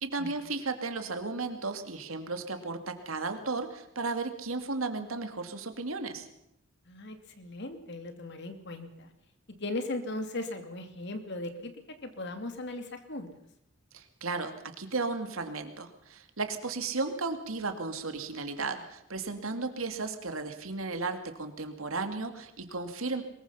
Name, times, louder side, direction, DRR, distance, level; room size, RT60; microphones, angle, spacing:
voice 1, 0.0-6.3 13.9-23.2, right 3 dB, 85° right, 7 dB, 2.5 m, -34 dB
voice 2, 6.9-9.1 9.6-11.7 12.0-13.3, left 2 dB, 55° left, 7 dB, 2.7 m, -38 dB
23.0 x 21.5 x 5.7 m, 0.79 s
head